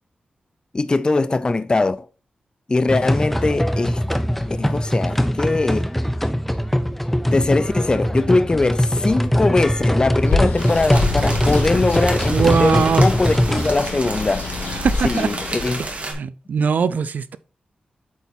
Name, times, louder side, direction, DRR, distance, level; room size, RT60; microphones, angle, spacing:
voice 1, 0.7-2.1 2.7-4.0 4.5-5.9 7.3-14.5 15.0-15.8, left 3 dB, 30° left, 0.4 m, -21 dB
sound 1, 2.9-13.7, equal, 5° left, 0.7 m, -21 dB
Bird, 10.1-16.0, left 4 dB, 80° left, 1.5 m, -27 dB
sound 2, 10.6-16.1, right 2 dB, 50° right, 2.2 m, -32 dB
voice 2, 12.3-13.1 14.8-15.3 16.1-17.4, right 6 dB, 75° right, 0.5 m, -20 dB
8.4 x 4.1 x 4.0 m
cardioid pair, 75°, 3 cm